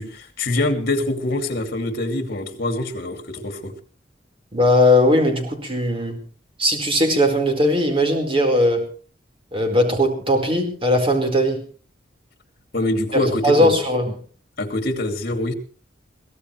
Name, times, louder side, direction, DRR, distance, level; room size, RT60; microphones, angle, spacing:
voice 1, 0.0-3.7 12.7-13.7 14.6-15.5, left 2 dB, 55° left, 6 dB, 2.7 m, -24 dB
voice 2, 4.5-6.2 6.6-8.9 9.5-11.6 13.1-14.1, left 1 dB, 30° right, 4 dB, 4.5 m, -19 dB
23.5 x 17.0 x 3.3 m, 0.40 s
head